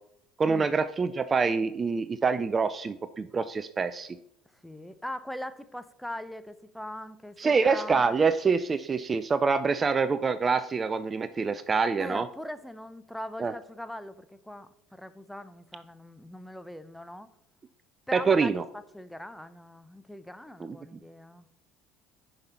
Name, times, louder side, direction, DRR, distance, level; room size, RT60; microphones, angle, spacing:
voice 1, 0.4-4.2 7.4-12.3 13.4-13.5 18.1-18.6 20.6-21.0, right 5 dB, 30° right, 13 dB, 0.4 m, -26 dB
voice 2, 4.6-8.1 12.0-17.3 18.1-18.5 18.9-21.5, left 1 dB, 5° left, 12 dB, 0.7 m, -41 dB
10.5 x 5.4 x 4.3 m, 0.76 s
figure-of-eight pair, 60°, 0 cm